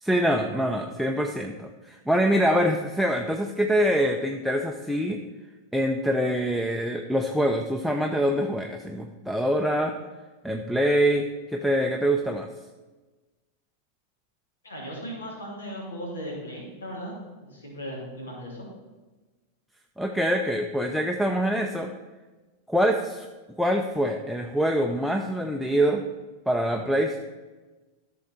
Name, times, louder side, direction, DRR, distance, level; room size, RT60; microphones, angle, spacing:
voice 1, 0.0-5.2 5.7-9.9 10.4-12.5 20.0-21.9 22.7-23.3 23.6-26.0 26.5-27.2, equal, ahead, 4 dB, 0.6 m, -25 dB
voice 2, 14.6-18.7, equal, 70° left, -2 dB, 2.9 m, -37 dB
13.0 x 6.4 x 4.3 m, 1.2 s
figure-of-eight pair, 90°, 0 cm